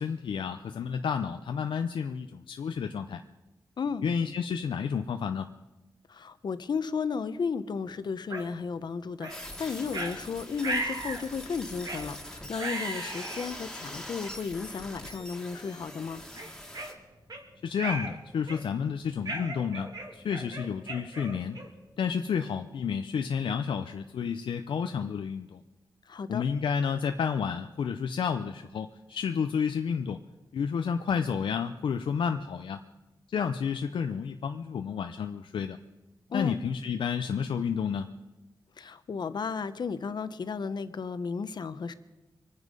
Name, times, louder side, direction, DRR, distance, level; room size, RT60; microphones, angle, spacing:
voice 1, 0.0-3.2 4.0-5.5 17.6-21.6 22.0-25.6 26.3-30.2 30.5-32.8 33.3-35.8 36.3-38.1, left 6 dB, 90° left, 7 dB, 0.6 m, -30 dB
voice 2, 6.1-16.2 26.1-26.4 36.3-36.6 38.8-41.9, left 5 dB, 60° left, 12 dB, 0.8 m, -34 dB
sound 1, 8.3-8.5 9.2-9.4 9.9-10.1 10.6-11.2 11.8-12.1 12.6-13.5 14.2-14.3 15.0-15.2 15.7-15.8 16.4-17.4 17.8-18.1 18.5-18.8 19.3-21.8, right 2 dB, 50° right, 2.5 m, -36 dB
sound 2, 9.3-16.9, left 1 dB, 5° left, 2.1 m, -43 dB
24.0 x 9.9 x 5.3 m, 1.1 s
wide cardioid pair, 120°, 8 cm